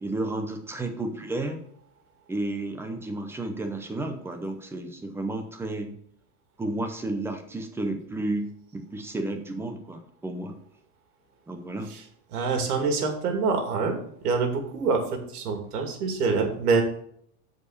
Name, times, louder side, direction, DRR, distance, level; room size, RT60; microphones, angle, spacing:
voice 1, 0.0-1.6 2.3-5.9 6.6-10.6 11.5-11.9, right 2 dB, 5° right, 5 dB, 0.6 m, -32 dB
voice 2, 12.3-16.8, right 4 dB, 80° right, 4 dB, 2.5 m, -26 dB
8.0 x 4.9 x 6.5 m, 0.66 s
supercardioid pair, 150°, 45 cm